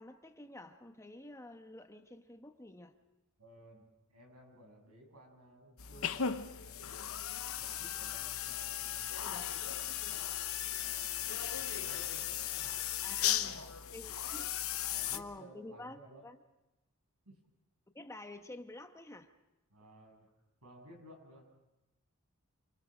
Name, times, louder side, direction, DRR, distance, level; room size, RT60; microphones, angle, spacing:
voice 1, 0.0-2.9 9.2-9.5 13.0-13.6 13.9-14.5 15.1-16.4 17.9-19.3, left 2 dB, 15° left, 1.1 m, -49 dB
voice 2, 3.4-10.2 10.8-12.9 13.2-14.1 14.9-16.2 17.3-17.4 19.7-20.3 20.6-21.6, right 1 dB, 90° right, 7.1 m, -57 dB
sound 1, 5.8-15.2, left 10 dB, 70° left, 1.0 m, -37 dB
28.5 x 25.5 x 5.1 m
head